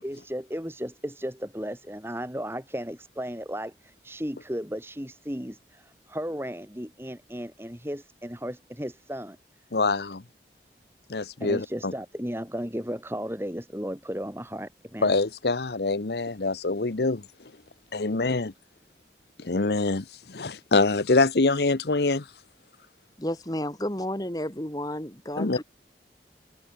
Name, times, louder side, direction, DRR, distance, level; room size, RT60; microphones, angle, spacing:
voice 1, 0.0-9.4 11.4-15.1, equal, 15° right, 4.7 m, -35 dB
voice 2, 9.7-10.2 11.1-11.9 15.0-17.3 17.9-18.5 19.4-22.3 25.4-25.6, left 3 dB, 70° left, 1.0 m, -25 dB
voice 3, 23.2-25.6, left 1 dB, 20° left, 2.2 m, -32 dB
head